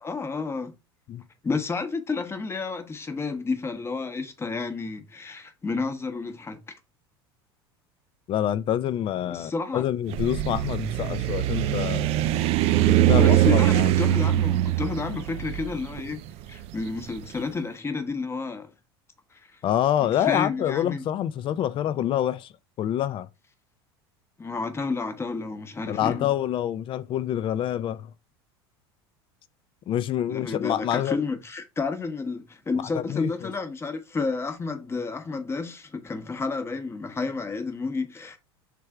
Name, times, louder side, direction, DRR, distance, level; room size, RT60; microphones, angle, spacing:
voice 1, 0.0-0.7 1.4-6.6 9.3-9.8 13.1-16.2 16.5-18.7 19.3-19.5 20.2-21.0 24.4-26.3 30.3-38.4, left 4 dB, 20° left, 0.9 m, -31 dB
voice 2, 8.3-12.2 12.9-13.9 19.6-22.5 22.8-23.3 25.9-28.1 29.9-31.2 32.9-33.5, left 11 dB, 40° left, 0.4 m, -27 dB
sound 1, 10.1-17.2, right 13 dB, 50° right, 0.4 m, -22 dB
3.4 x 3.3 x 4.6 m
hypercardioid pair, 85°, 13 cm